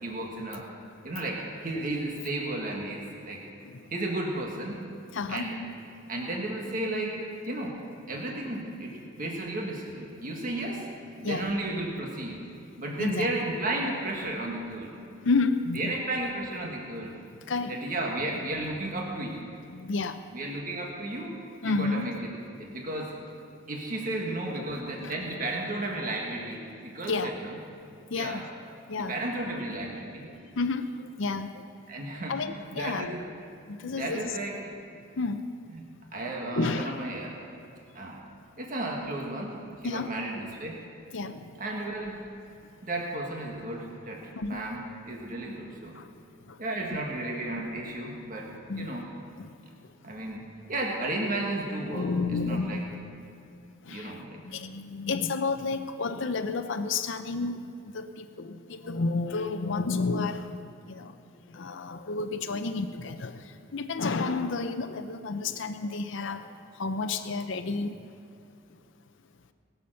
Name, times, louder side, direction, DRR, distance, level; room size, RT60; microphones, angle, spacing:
voice 1, 0.0-0.7 1.0-3.4 3.9-4.8 5.3-5.6 6.1-7.8 8.1-10.9 11.2-12.4 12.8-14.9 15.7-17.2 17.6-19.5 20.3-21.3 21.6-22.3 22.6-23.1 23.7-27.6 28.1-28.4 29.0-30.3 31.9-33.3 33.8-34.7 36.1-37.4 37.9-38.2 38.6-39.5 39.8-40.8 41.6-42.2 42.8-46.0 46.6-49.1 50.0-52.8 53.9-54.4, right 1 dB, 40° right, -1 dB, 1.5 m, -33 dB
voice 2, 5.1-5.5 11.2-11.4 13.0-13.3 15.2-16.0 17.5-17.8 19.7-20.2 21.6-22.1 24.5-25.1 27.1-27.4 28.1-28.5 28.9-29.2 30.6-31.5 32.3-33.1 33.7-34.3 35.2-35.4 36.6-36.9 39.8-40.1 41.1-41.5 44.4-44.6 46.0-46.1 48.7-48.9 49.4-49.5 51.9-52.8 53.9-54.1 54.4-60.6 60.9-61.1 61.5-63.4 63.7-66.5 66.8-68.0, left 3 dB, 60° left, 8 dB, 0.6 m, -31 dB
21.0 x 7.1 x 6.5 m, 2.5 s
head